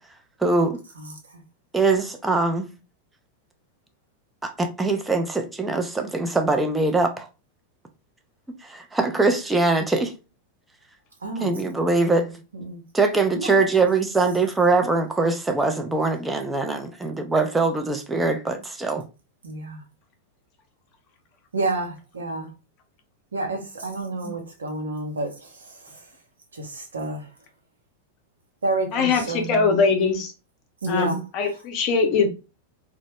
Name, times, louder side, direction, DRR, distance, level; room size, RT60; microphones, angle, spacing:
voice 1, 0.4-0.8 1.7-2.7 4.4-7.3 8.6-10.1 11.4-12.3 12.9-19.0 24.2-24.3, right 3 dB, 10° right, 0.4 m, -22 dB
voice 2, 11.2-11.5 12.5-12.8 13.3-13.6 19.4-19.8 21.5-22.5 23.3-25.3 26.6-27.2 28.6-29.7 30.8-31.2, right 2 dB, 85° right, 0.7 m, -29 dB
voice 3, 28.9-30.3 30.9-32.3, left 4 dB, 45° left, 0.6 m, -22 dB
2.1 x 2.0 x 2.9 m
hypercardioid pair, 95°, 0 cm